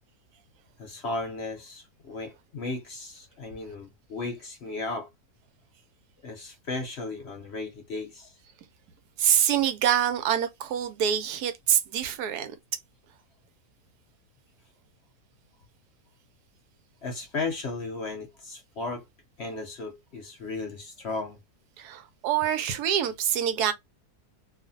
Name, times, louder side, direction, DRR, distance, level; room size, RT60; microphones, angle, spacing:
voice 1, 0.8-5.1 6.2-8.4 17.0-19.0 19.4-21.4, left 3 dB, 60° left, 0.7 m, -35 dB
voice 2, 9.2-12.5 21.8-23.7, right 9 dB, 85° right, 1.2 m, -25 dB
2.5 x 2.4 x 2.6 m
omnidirectional pair, 1.7 m